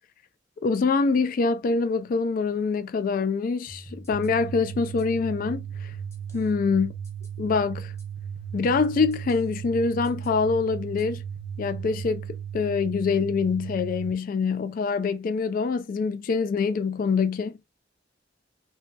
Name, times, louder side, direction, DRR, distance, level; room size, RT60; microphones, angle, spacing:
voice 1, 0.6-5.9 6.3-6.9 7.4-7.9 8.5-11.2 11.6-17.6, left 4 dB, 45° left, 0.3 m, -25 dB
sound 1, 3.7-12.1, right 1 dB, 15° left, 0.8 m, -45 dB
sound 2, 4.1-14.1, right 9 dB, 80° right, 0.3 m, -36 dB
3.1 x 2.2 x 2.6 m
head